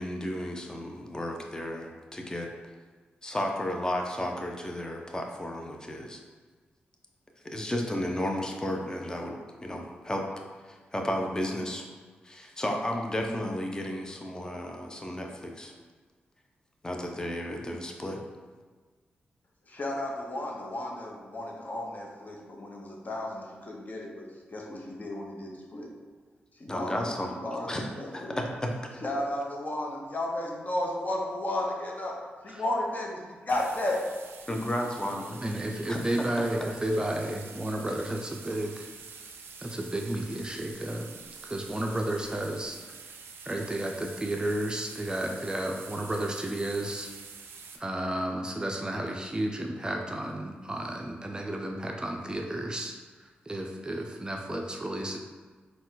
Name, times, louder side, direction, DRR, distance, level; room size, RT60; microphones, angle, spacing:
voice 1, 0.0-2.5 3.2-6.2 7.4-10.3 10.6-11.8 12.2-15.7 16.8-18.2 26.7-27.3 27.6-27.9 28.1-29.0 34.5-35.3 35.9-36.7, left 1 dB, 20° left, 2 dB, 0.7 m, -33 dB
voice 2, 19.7-25.9 26.5-28.4 29.0-34.0, left 1 dB, 45° left, -1 dB, 0.9 m, -33 dB
sound 1, 33.5-47.8, right 5 dB, 80° right, 0.4 m, -47 dB
voice 3, 35.4-38.9 39.6-41.1 41.4-42.8 43.5-47.1 47.7-53.0 53.2-55.2, right 1 dB, 20° right, 2 dB, 0.5 m, -32 dB
4.1 x 2.4 x 3.9 m, 1.5 s
supercardioid pair, 50°, 4 cm